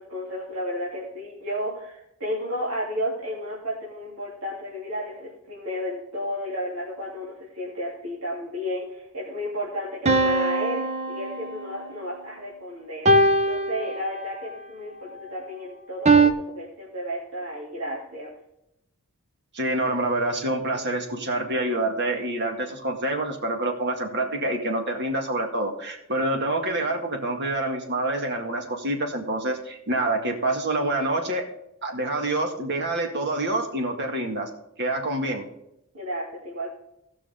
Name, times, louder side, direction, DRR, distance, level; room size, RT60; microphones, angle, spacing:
voice 1, 0.0-13.1 13.5-18.3 35.9-36.7, equal, 70° right, -7 dB, 3.1 m, -32 dB
sound 1, 10.1-11.8 13.1-14.5 16.1-16.3, right 2 dB, 30° right, 0.8 m, -21 dB
voice 2, 19.5-31.4 31.8-34.5 34.8-35.4, right 2 dB, 50° right, 3 dB, 2.0 m, -27 dB
18.0 x 6.3 x 3.7 m, 0.83 s
head